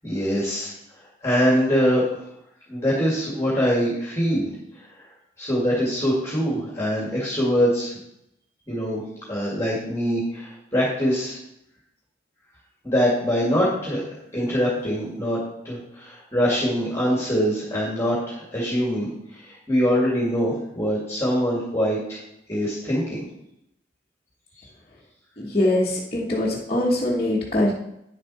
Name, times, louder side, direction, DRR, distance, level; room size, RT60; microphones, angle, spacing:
voice 1, 0.0-0.7 1.0-2.0 2.7-4.5 4.7-4.8 5.4-7.9 8.7-9.0 9.3-11.4 12.8-15.4 15.6-22.2 22.5-23.2, equal, 15° left, -6 dB, 2.2 m, -23 dB
voice 2, 25.4-27.7, left 1 dB, 35° left, -7 dB, 1.3 m, -22 dB
9.7 x 7.4 x 4.2 m, 0.79 s
head